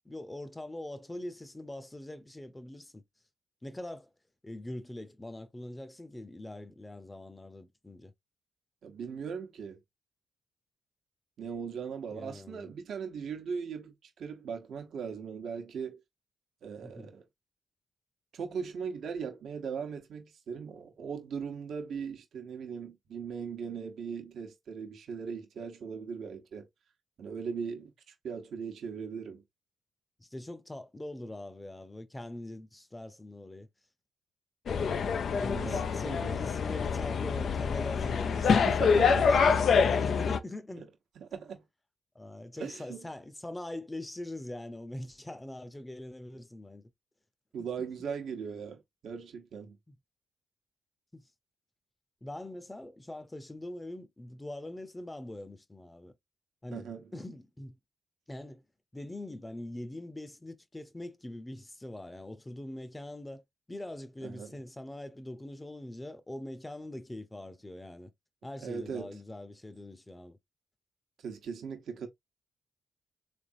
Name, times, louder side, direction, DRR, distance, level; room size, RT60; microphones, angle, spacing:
voice 1, 0.0-3.0 3.6-4.1 4.4-8.1 12.1-12.7 16.8-17.1 30.2-33.7 35.3-40.9 42.1-46.9 47.6-47.9 49.9-50.0 51.1-51.2 52.2-56.1 56.6-56.9 57.1-57.8 58.3-58.6 58.9-63.4 63.7-68.1 68.4-70.4, left 1 dB, 15° left, 0.8 m, -43 dB
voice 2, 8.8-9.8 11.4-16.0 16.6-17.2 18.3-26.7 27.2-29.4 35.3-36.4 38.5-39.6 41.2-41.6 42.6-43.1 47.5-49.8 56.7-57.1 64.2-64.5 68.6-69.1 71.2-72.1, right 6 dB, 70° right, 0.9 m, -39 dB
sound 1, 34.7-40.4, left 6 dB, 65° left, 0.4 m, -26 dB
3.5 x 3.3 x 2.6 m
supercardioid pair, 55°, 0 cm